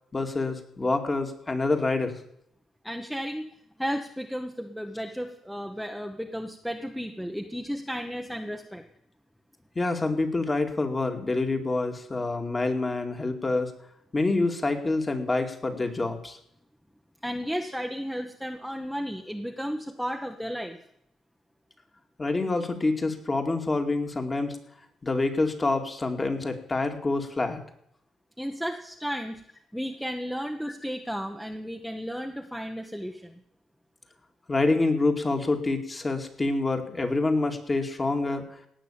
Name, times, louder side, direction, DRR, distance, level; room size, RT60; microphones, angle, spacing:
voice 1, 0.1-2.1 9.8-13.7 14.1-16.4 22.2-24.6 25.0-27.6 34.5-38.4, left 3 dB, 25° left, 4 dB, 2.3 m, -27 dB
voice 2, 2.8-3.5 3.8-8.8 17.2-20.8 28.4-29.4 29.7-33.3, equal, ahead, 4 dB, 1.1 m, -33 dB
18.0 x 6.3 x 8.7 m, 0.72 s
cardioid pair, 90°, 0 cm